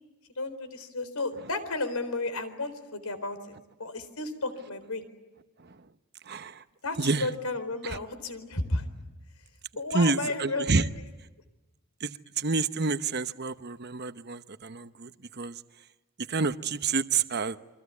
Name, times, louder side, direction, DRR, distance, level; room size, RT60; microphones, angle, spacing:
voice 1, 0.4-5.1 6.8-8.9 9.8-10.9, left 2 dB, 80° left, 11 dB, 4.2 m, -33 dB
voice 2, 6.2-6.6 7.0-7.3 7.8-8.0 9.9-10.9 12.0-15.6 16.3-17.6, right 4 dB, 45° right, 11 dB, 0.9 m, -29 dB
29.0 x 24.5 x 8.4 m, 1.1 s
head